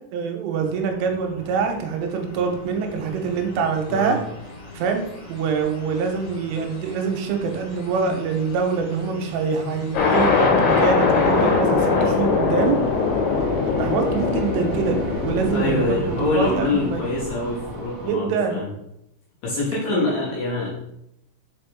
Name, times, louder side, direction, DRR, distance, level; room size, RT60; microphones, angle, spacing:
voice 1, 0.1-4.2 4.7-5.0 5.3-12.8 13.8-15.0 15.2-17.0 18.0-18.6 19.9-20.1, right 5 dB, 90° right, 4 dB, 3.3 m, -24 dB
sound 1, 0.6-10.3, left 2 dB, 45° left, 2.2 m, -41 dB
sound 2, 9.9-17.5, left 5 dB, 90° left, 4.1 m, -21 dB
sound 3, 9.9-18.1, right 3 dB, 60° right, 1.3 m, -36 dB
voice 2, 15.5-18.7 19.4-20.7, left 3 dB, 70° left, -5 dB, 2.4 m, -25 dB
7.3 x 4.4 x 3.4 m, 0.80 s
omnidirectional pair, 5.7 m